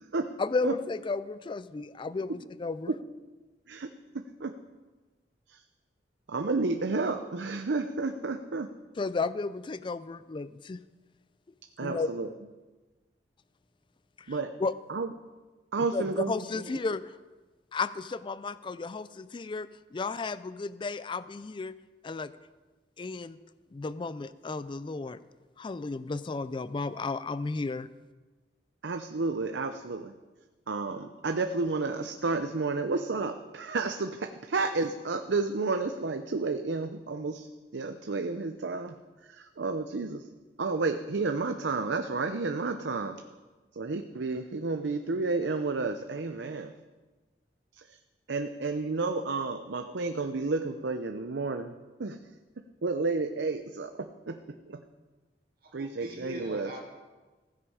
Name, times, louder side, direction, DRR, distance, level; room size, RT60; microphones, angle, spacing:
voice 1, 0.4-2.9 8.9-10.8 11.8-12.3 14.2-14.7 15.8-17.2 17.7-21.7 22.0-22.3 23.0-23.4 23.7-25.2 25.6-27.9, left 3 dB, 30° left, 16 dB, 0.4 m, -33 dB
voice 2, 6.3-8.7 11.8-12.3 14.3-14.5 14.9-15.1 15.7-16.3 28.8-30.1 30.7-37.5 37.7-38.9 39.6-40.2 40.6-43.2 43.8-46.7 48.3-51.7 52.0-52.2 52.8-54.4 55.7-56.7, right 3 dB, 80° right, 7 dB, 0.6 m, -31 dB
voice 3, 55.6-56.8, right 1 dB, 55° right, 0 dB, 2.3 m, -42 dB
15.5 x 9.7 x 4.9 m, 1.3 s
head